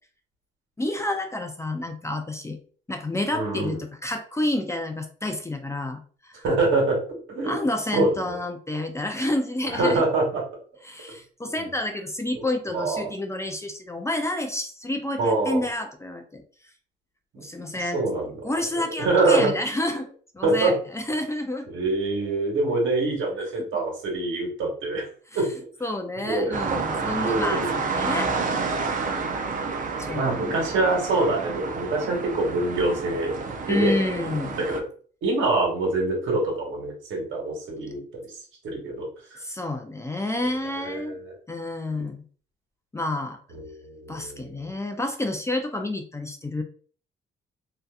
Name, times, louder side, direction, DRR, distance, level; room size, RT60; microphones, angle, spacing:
voice 1, 0.8-2.6 2.9-6.4 7.4-10.0 10.8-16.4 17.4-18.0 18.4-20.1 20.3-21.7 25.3-25.4 25.8-28.3 30.0-30.6 33.7-34.6 39.4-41.2 41.5-42.2 42.9-43.4 44.1-46.6, left 1 dB, 15° left, 5 dB, 0.4 m, -29 dB
voice 2, 3.3-3.8 6.4-7.0 7.3-7.6 7.9-8.1 9.6-10.4 12.7-13.0 15.2-15.6 17.3-17.4 17.8-18.5 19.0-19.5 20.4-20.7 21.7-25.0 25.3-25.5 26.2-26.6 27.2-27.8 30.1-33.9 34.6-34.8 35.2-38.0 38.6-39.1 40.8-41.3 43.8-44.7, right 2 dB, 75° right, -1 dB, 1.2 m, -25 dB
sound 1, 26.5-34.8, right 4 dB, 40° right, 0.5 m, -29 dB
2.7 x 2.2 x 2.3 m, 0.43 s
cardioid pair, 90°, 20 cm